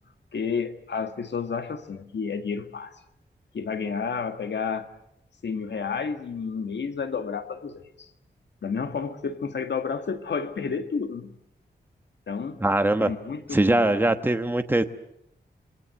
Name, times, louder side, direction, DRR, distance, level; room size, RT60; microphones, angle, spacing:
voice 1, 0.3-2.9 3.5-4.9 5.4-8.1 8.6-11.3 12.3-12.6 13.0-14.1, left 5 dB, 75° left, 1.7 m, -31 dB
voice 2, 12.6-13.1 13.5-14.8, right 1 dB, 10° right, 1.2 m, -21 dB
27.0 x 23.0 x 7.8 m
wide cardioid pair, 135°, 18 cm